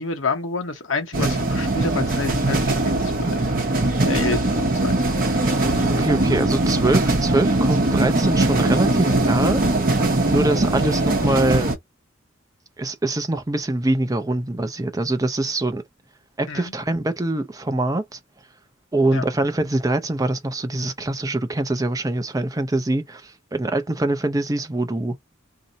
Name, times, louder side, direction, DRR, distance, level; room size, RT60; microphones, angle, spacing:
voice 1, 0.0-3.4 4.0-5.5 16.5-16.7 19.1-19.2, left 4 dB, 70° left, 1.0 m, -29 dB
sound 1, 1.1-11.8, right 2 dB, 45° right, 1.0 m, -21 dB
voice 2, 6.0-9.6 10.2-11.8 12.8-15.8 16.4-18.2 18.9-25.1, right 2 dB, 20° right, 0.6 m, -24 dB
2.8 x 2.5 x 4.0 m
head